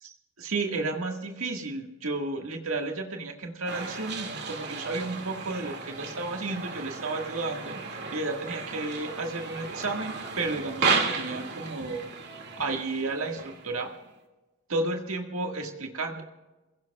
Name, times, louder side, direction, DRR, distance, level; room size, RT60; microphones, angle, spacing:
voice 1, 0.0-12.0 12.6-13.9 14.7-16.2, right 3 dB, 80° right, 2 dB, 1.8 m, -32 dB
sound 1, 3.7-14.1, right 4 dB, 55° right, 2.3 m, -34 dB
28.5 x 17.0 x 2.4 m, 1.1 s
head